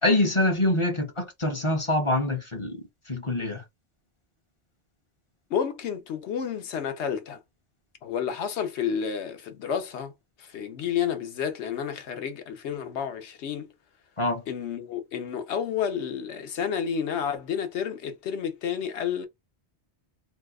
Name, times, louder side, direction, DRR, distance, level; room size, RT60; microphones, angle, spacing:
voice 1, 0.0-3.6 14.2-14.4, left 1 dB, 35° left, 0.6 m, -25 dB
voice 2, 5.5-7.4 8.0-10.1 10.4-13.7 14.5-19.3, left 8 dB, 80° left, 1.0 m, -30 dB
2.7 x 2.3 x 3.4 m
omnidirectional pair, 1.1 m